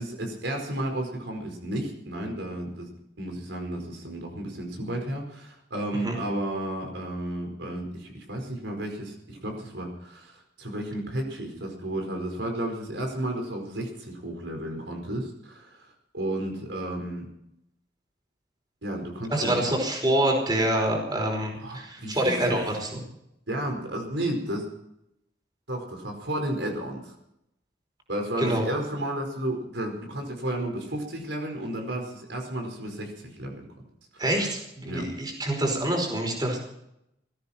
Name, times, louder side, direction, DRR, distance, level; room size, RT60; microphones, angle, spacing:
voice 1, 0.0-2.9 3.2-17.3 18.8-19.6 21.6-22.6 23.5-24.7 25.7-27.1 28.1-33.7 34.1-34.2 34.9-35.1, right 1 dB, 80° right, 2 dB, 4.8 m, -32 dB
voice 2, 19.3-22.9 28.4-28.7 34.2-36.6, right 1 dB, 25° right, 1 dB, 5.0 m, -26 dB
21.0 x 14.5 x 4.4 m, 0.79 s
head